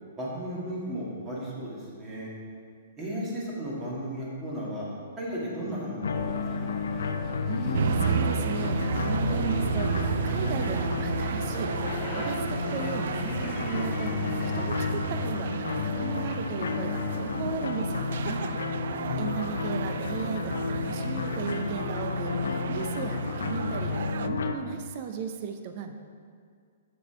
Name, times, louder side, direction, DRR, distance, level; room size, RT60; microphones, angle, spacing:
voice 1, 0.2-2.3 3.0-4.9 5.2-6.7 19.0-19.3, equal, 20° right, -6 dB, 2.2 m, -35 dB
sound 1, 6.0-24.5, left 4 dB, 85° left, 0.6 m, -31 dB
sound 2, 6.1-14.9, left 4 dB, 30° left, 0.9 m, -43 dB
voice 2, 7.5-11.7 12.1-18.5 19.2-25.9, right 6 dB, 40° right, 7 dB, 0.7 m, -36 dB
sound 3, 7.7-24.3, right 8 dB, 65° right, 0.3 m, -33 dB
7.0 x 6.9 x 4.9 m, 2.2 s
hypercardioid pair, 155°, 0 cm